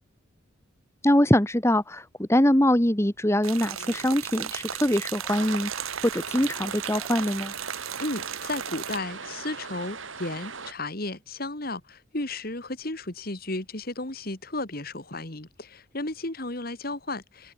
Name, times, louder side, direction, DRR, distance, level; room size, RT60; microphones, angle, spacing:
voice 1, 1.0-5.7 6.0-7.5, left 1 dB, 15° left, 1.3 m, -23 dB
sound 1, 3.4-9.0, right 9 dB, 85° right, 1.2 m, -35 dB
sound 2, 5.3-10.7, right 5 dB, 70° right, 6.2 m, -39 dB
voice 2, 8.0-17.5, left 2 dB, 45° left, 2.3 m, -34 dB
head